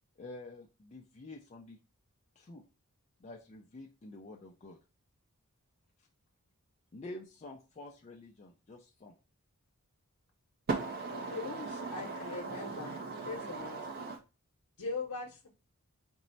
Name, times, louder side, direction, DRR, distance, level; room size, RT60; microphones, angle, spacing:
voice 1, 0.2-1.8 2.4-2.6 3.2-4.8 6.9-9.1, left 2 dB, 30° left, 0.4 m, -48 dB
voice 2, 10.7-14.2, right 4 dB, 45° right, 0.5 m, -38 dB
voice 3, 11.3-13.0 13.3-13.8 14.8-15.5, left 3 dB, 90° left, 0.8 m, -40 dB
4.4 x 2.0 x 3.9 m
head